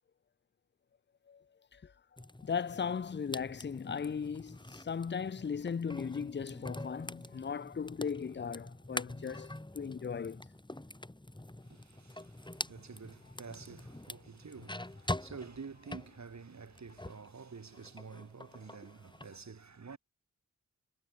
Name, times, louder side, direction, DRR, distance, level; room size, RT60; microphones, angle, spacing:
sound 1, 2.2-17.3 17.6-19.3, left 1 dB, 15° left, 4.1 m, -45 dB
voice 1, 2.4-10.4, left 6 dB, 35° left, 0.7 m, -37 dB
voice 2, 11.6-20.0, right 5 dB, 60° right, 5.6 m, -49 dB
cardioid pair, 55°, 31 cm